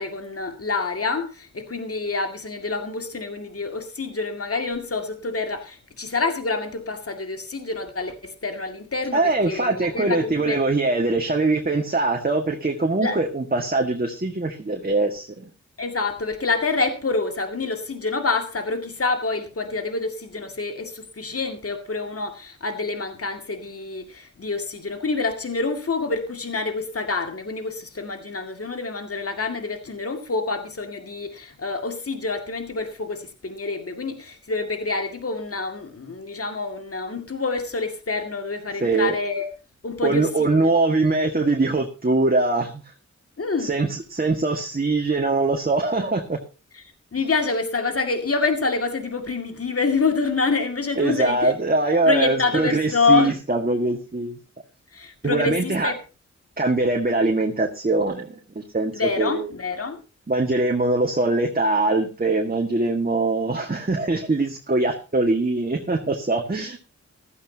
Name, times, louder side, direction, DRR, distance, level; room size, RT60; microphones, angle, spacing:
voice 1, 0.0-10.6 13.0-13.2 15.8-39.5 39.8-40.5 43.4-43.7 47.1-51.5 52.1-53.4 54.9-56.0 58.9-60.0, left 3 dB, 50° left, 2.3 m, -27 dB
voice 2, 9.1-15.5 38.8-39.2 40.0-42.8 43.6-46.4 51.0-54.4 55.2-55.9 56.6-59.5 60.3-66.8, right 2 dB, 30° right, 1.7 m, -22 dB
15.0 x 13.0 x 2.9 m
wide cardioid pair, 65°, 29 cm